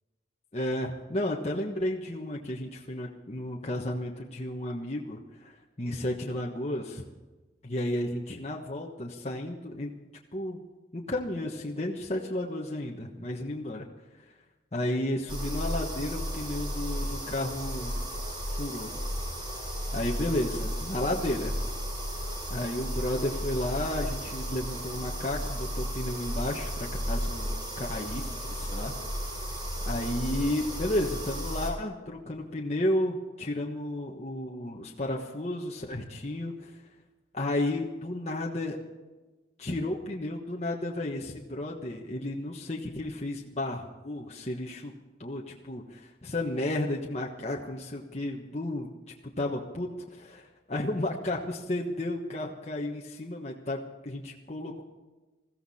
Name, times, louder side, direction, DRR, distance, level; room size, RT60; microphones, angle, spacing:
voice 1, 0.5-7.0 7.6-9.9 10.3-10.6 10.9-13.8 14.7-17.9 18.6-18.9 19.9-21.6 22.5-28.9 29.8-36.7 37.3-38.8 39.6-44.9 45.2-48.9 49.4-53.8 54.0-54.8, left 1 dB, 35° left, -1 dB, 1.3 m, -32 dB
sound 1, 15.3-31.7, equal, 25° right, 4.6 m, -34 dB
21.0 x 15.0 x 4.3 m, 1.2 s
head